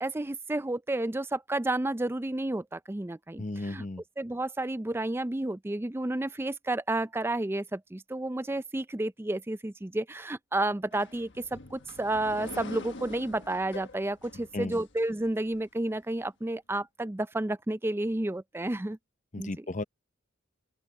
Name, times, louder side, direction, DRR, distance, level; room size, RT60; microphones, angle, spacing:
voice 1, 0.0-3.8 4.2-19.0 19.4-19.7, right 1 dB, 10° right, 0.4 m, -31 dB
voice 2, 3.4-4.0 14.5-14.8 19.3-19.8, left 2 dB, 35° left, 0.8 m, -34 dB
sound 1, 10.9-15.6, left 2 dB, 55° left, 1.5 m, -45 dB
open air
head